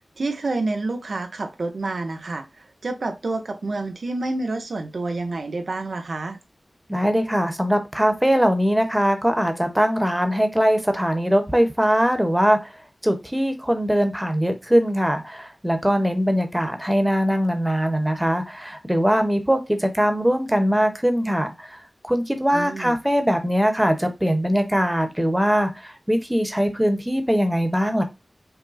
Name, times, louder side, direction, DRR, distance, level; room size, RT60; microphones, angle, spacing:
voice 1, 0.2-6.4 22.5-23.0, right 2 dB, 85° right, 0.8 m, -28 dB
voice 2, 6.9-12.7 13.0-28.0, equal, 5° right, 1.0 m, -21 dB
5.7 x 2.1 x 4.0 m
wide cardioid pair, 80°, 0 cm